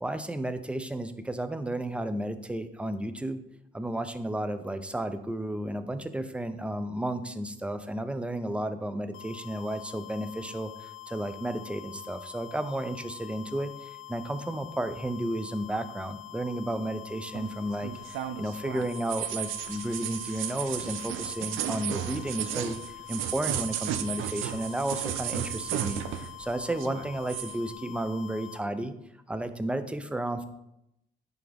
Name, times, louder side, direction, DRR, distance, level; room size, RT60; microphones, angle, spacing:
voice 1, 0.0-3.4 3.7-22.8 23.1-28.9 29.3-30.4, right 1 dB, 5° right, 10 dB, 0.5 m, -33 dB
sound 1, 9.1-28.6, left 16 dB, 85° left, 0.9 m, -45 dB
sound 2, 17.3-26.4 26.7-27.6, right 11 dB, 85° right, 0.4 m, -34 dB
9.9 x 3.5 x 3.5 m, 0.83 s
cardioid pair, 90°, 20 cm